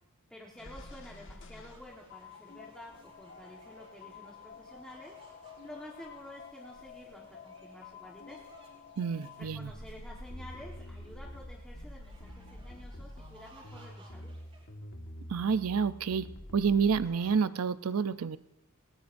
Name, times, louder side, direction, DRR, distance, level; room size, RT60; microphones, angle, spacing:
voice 1, 0.3-5.1 5.6-8.4 9.5-14.3, left 1 dB, 5° left, -3 dB, 1.3 m, -50 dB
sound 1, 0.6-17.4, left 2 dB, 60° left, 1.6 m, -49 dB
sound 2, 1.7-14.7, right 1 dB, 30° right, 4.8 m, -54 dB
voice 2, 9.0-9.7 15.3-16.3 16.5-18.4, right 6 dB, 85° right, 15 dB, 0.5 m, -29 dB
19.5 x 18.5 x 2.6 m, 0.86 s
head